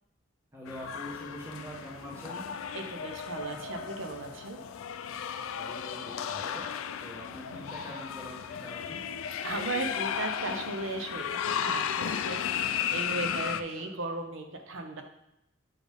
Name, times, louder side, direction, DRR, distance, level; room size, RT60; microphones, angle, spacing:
voice 1, 0.5-2.5 5.5-6.7 7.0-9.1 13.3-13.9, equal, 15° right, -6 dB, 1.2 m, -44 dB
sound 1, 0.7-13.6, left 8 dB, 90° left, 0.4 m, -35 dB
voice 2, 2.7-4.6 9.4-11.2 11.5-15.0, right 2 dB, 80° right, 4 dB, 0.9 m, -36 dB
7.8 x 4.1 x 3.5 m, 0.82 s
head